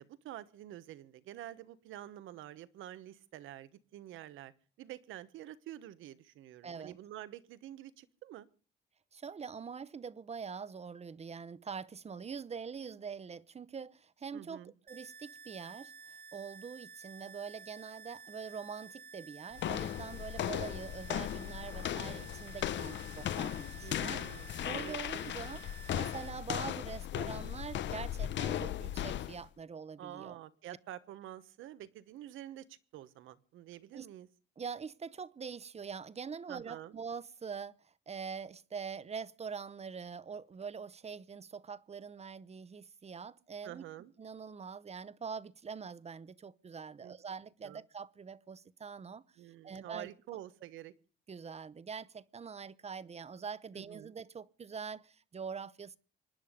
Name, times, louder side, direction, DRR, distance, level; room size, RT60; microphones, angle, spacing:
voice 1, 0.0-4.5 4.8-8.5 14.3-14.7 23.8-25.0 30.0-34.3 36.5-37.0 43.6-44.1 47.0-47.2 47.6-47.8 49.4-50.9 53.7-54.1, right 12 dB, 90° right, 1.2 m, -48 dB
voice 2, 6.6-7.0 9.1-15.9 16.3-24.2 24.6-25.6 25.9-30.4 33.9-34.1 34.6-43.8 44.2-49.2 49.6-50.1 51.3-56.0, right 6 dB, 30° right, 0.8 m, -44 dB
sound 1, 14.9-26.3, right 5 dB, 50° right, 1.4 m, -52 dB
sound 2, 19.5-29.5, left 11 dB, 65° left, 0.7 m, -37 dB
26.0 x 10.5 x 5.2 m
cardioid pair, 90°, 20 cm